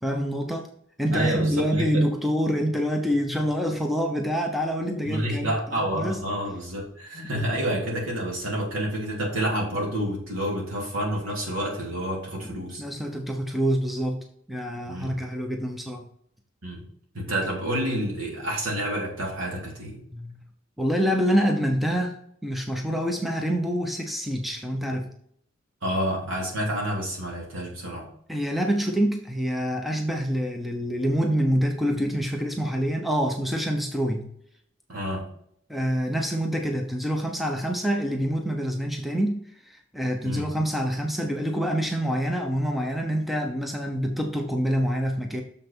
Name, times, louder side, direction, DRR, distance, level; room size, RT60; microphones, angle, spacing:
voice 1, 0.0-0.7 1.0-6.2 7.3-7.6 12.4-16.1 20.1-20.3 20.8-25.1 28.3-34.3 35.7-45.4, equal, ahead, 2 dB, 0.7 m, -26 dB
voice 2, 1.1-2.1 5.0-12.8 14.8-15.1 16.6-16.8 17.1-20.0 25.8-28.1 34.9-35.2 40.2-40.5, right 1 dB, 80° right, -2 dB, 3.1 m, -29 dB
6.8 x 5.9 x 4.4 m, 0.67 s
head